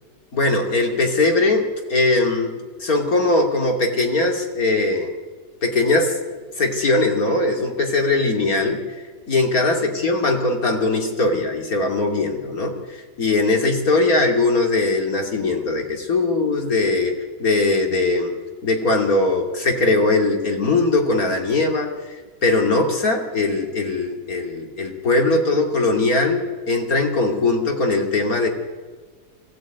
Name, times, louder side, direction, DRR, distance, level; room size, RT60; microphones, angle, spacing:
voice 1, 0.3-5.1 5.6-6.2 6.6-8.8 9.3-18.3 18.6-28.5, left 2 dB, 60° left, 2 dB, 3.2 m, -20 dB
23.0 x 17.5 x 9.1 m, 1.4 s
omnidirectional pair, 1.7 m